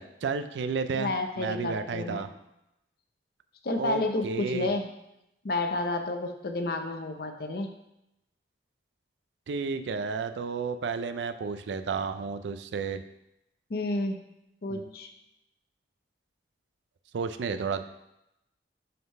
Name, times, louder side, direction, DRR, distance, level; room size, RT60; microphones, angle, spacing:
voice 1, 0.0-1.1 1.4-2.3 3.7-4.7 9.5-13.0 14.7-14.9 17.1-17.8, right 5 dB, 85° right, 9 dB, 0.4 m, -32 dB
voice 2, 0.9-2.3 3.6-4.9 5.4-7.7 13.7-14.2 14.6-15.1, left 2 dB, 55° left, 5 dB, 0.6 m, -30 dB
5.6 x 3.8 x 5.3 m, 0.86 s
head